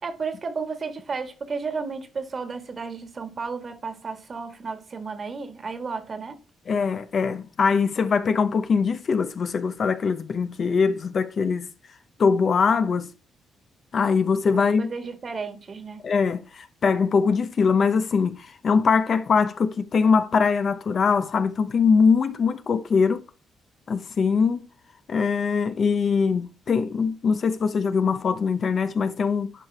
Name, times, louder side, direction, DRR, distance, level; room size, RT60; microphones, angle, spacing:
voice 1, 0.0-6.4 14.5-16.0, right 4 dB, 40° right, 1.6 m, -33 dB
voice 2, 6.7-11.7 12.2-13.1 13.9-14.9 16.0-23.2 23.9-24.6 25.1-29.5, left 5 dB, 50° left, 0.8 m, -22 dB
11.0 x 4.8 x 3.4 m
cardioid pair, 90°, 0 cm